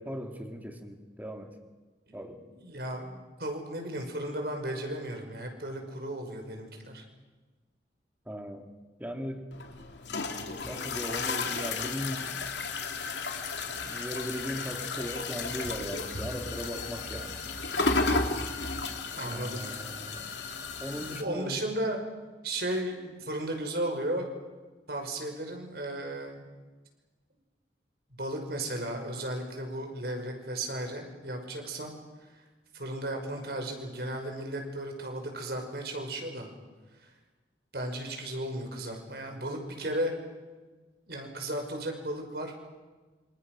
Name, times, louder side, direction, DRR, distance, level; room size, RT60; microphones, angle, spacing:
voice 1, 0.0-1.5 2.1-2.4 8.3-8.7 9.0-9.4 10.6-12.4 13.7-17.4 19.2-20.3 20.8-21.6, equal, 10° right, 4 dB, 2.6 m, -38 dB
voice 2, 2.5-7.0 19.1-19.6 20.8-22.0 22.4-24.3 24.9-26.4 28.2-31.9 32.7-36.5 37.7-40.1 41.1-42.5, right 1 dB, 60° right, 4 dB, 5.7 m, -35 dB
sound 1, 9.5-21.2, left 3 dB, 85° left, 2.8 m, -33 dB
27.5 x 27.5 x 6.3 m, 1.3 s
head